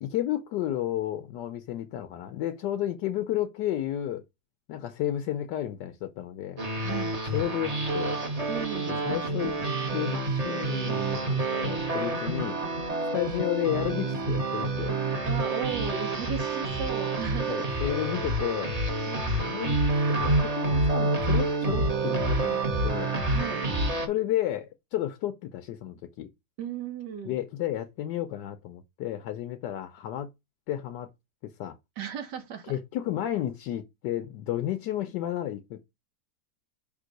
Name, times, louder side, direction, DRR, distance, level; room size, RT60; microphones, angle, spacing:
voice 1, 0.0-4.2 4.7-6.6 7.2-8.2 8.9-9.6 9.9-12.6 13.1-15.0 17.5-18.7 19.4-19.8 20.1-23.2 24.1-26.3 27.2-30.3 30.7-31.1 31.4-31.8 32.7-35.8, left 12 dB, 90° left, 1.3 m, -32 dB
sound 1, 6.6-24.1, right 2 dB, 25° right, 1.1 m, -28 dB
voice 2, 6.8-7.1 8.5-8.9 15.2-17.6 19.1-19.7 23.3-23.7 26.6-27.4 32.0-32.8, right 8 dB, 80° right, 1.5 m, -36 dB
5.3 x 3.7 x 5.1 m
omnidirectional pair, 1.8 m